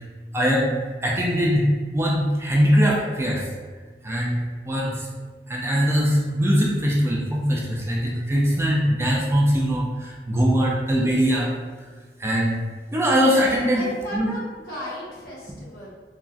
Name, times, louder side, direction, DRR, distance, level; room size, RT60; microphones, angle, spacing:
voice 1, 0.3-3.5 4.0-5.1 5.5-11.5 12.2-12.6 12.9-13.8 14.1-14.3, equal, 15° right, -3 dB, 0.3 m, -21 dB
voice 2, 13.7-15.9, equal, 60° left, -7 dB, 1.0 m, -35 dB
3.8 x 2.1 x 2.3 m, 1.4 s
head